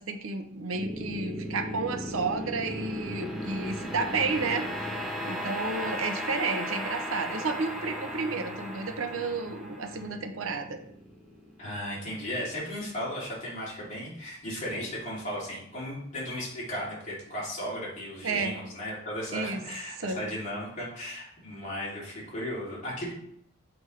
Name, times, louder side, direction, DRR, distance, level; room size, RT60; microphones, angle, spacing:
voice 1, 0.0-10.8 18.2-18.6 19.3-19.6 20.0-20.2, right 4 dB, 85° right, 7 dB, 0.7 m, -32 dB
sound 1, 0.7-11.9, equal, ahead, 1.2 m, -36 dB
voice 2, 11.6-23.1, equal, 35° left, -7 dB, 2.8 m, -35 dB
7.0 x 5.1 x 3.2 m, 0.72 s
head